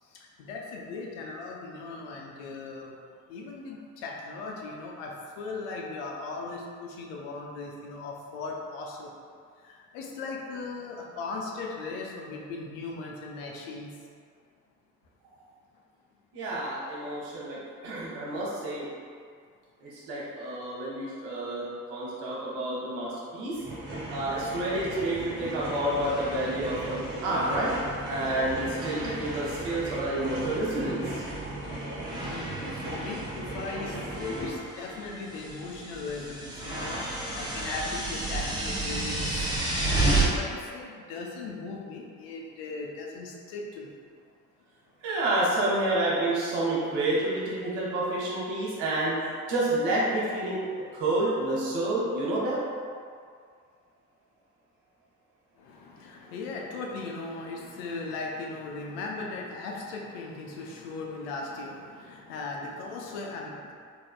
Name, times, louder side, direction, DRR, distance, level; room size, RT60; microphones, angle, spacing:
voice 1, 0.0-3.0 3.3-9.2 9.6-14.0 17.6-17.7 28.4-28.7 32.2-44.0 55.6-63.7, left 3 dB, 65° left, -1 dB, 0.6 m, -38 dB
voice 2, 16.3-18.9 19.8-23.6 24.1-27.8 28.1-31.2 45.0-50.6 50.9-52.6, right 1 dB, 65° right, -6 dB, 1.1 m, -29 dB
sound 1, 23.5-34.5, right 1 dB, 30° right, 1.4 m, -37 dB
sound 2, 25.4-25.5 25.9-28.4 28.6-29.9 30.2-31.4 32.0-40.2, right 2 dB, 10° right, 0.9 m, -33 dB
3.8 x 3.5 x 2.2 m, 2.1 s
figure-of-eight pair, 40°, 42 cm